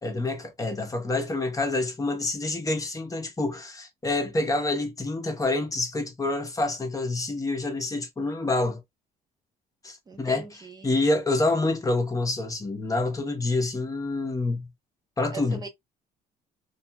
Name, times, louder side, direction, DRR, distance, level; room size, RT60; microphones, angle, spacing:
voice 1, 0.0-8.8 9.8-10.5 10.8-14.7 15.2-15.6, left 2 dB, 20° left, 0.8 m, -27 dB
voice 2, 10.1-11.0 15.3-15.7, right 4 dB, 25° right, 0.7 m, -40 dB
2.8 x 2.4 x 2.2 m
cardioid pair, 110°, 17 cm